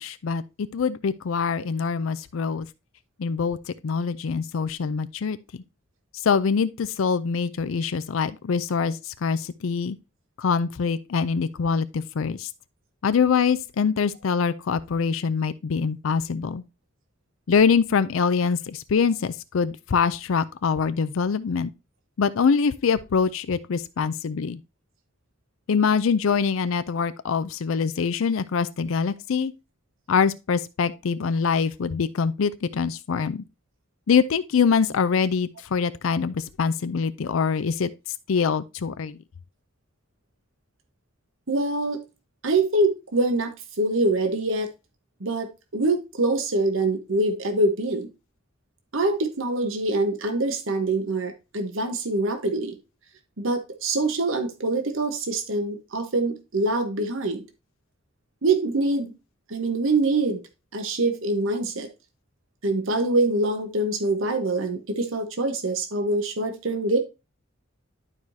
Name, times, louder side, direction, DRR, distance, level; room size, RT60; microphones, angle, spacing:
voice 1, 0.0-2.7 3.2-3.6 3.8-5.6 6.2-10.0 10.4-12.5 13.0-16.6 17.5-21.7 22.2-24.6 25.7-29.5 30.1-33.4 34.1-37.9 38.3-39.2, left 6 dB, 75° left, 0.4 m, -24 dB
voice 2, 41.5-42.0 42.4-43.5 43.8-44.7 45.2-48.1 48.9-52.8 53.4-57.4 58.4-59.1 59.5-60.4 60.7-61.9 62.6-67.0, right 2 dB, 70° right, 1.1 m, -24 dB
11.5 x 4.8 x 2.7 m
head